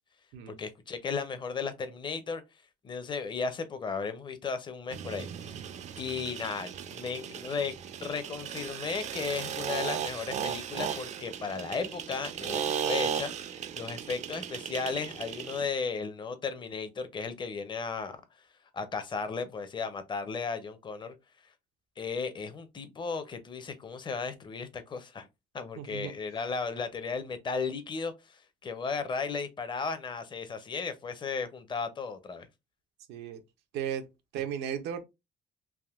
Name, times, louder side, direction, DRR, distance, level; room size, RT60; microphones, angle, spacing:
voice 1, 0.5-2.4 2.8-5.7 6.0-7.7 8.0-18.2 18.7-21.1 22.0-25.3 25.5-32.5, left 5 dB, 30° left, 0.6 m, -35 dB
sound 1, 4.9-15.7, right 8 dB, 45° right, 0.4 m, -36 dB
voice 2, 25.8-26.1 33.1-33.4 33.7-35.0, right 9 dB, 85° right, 0.6 m, -35 dB
3.5 x 2.5 x 2.4 m
cardioid pair, 110°, 17 cm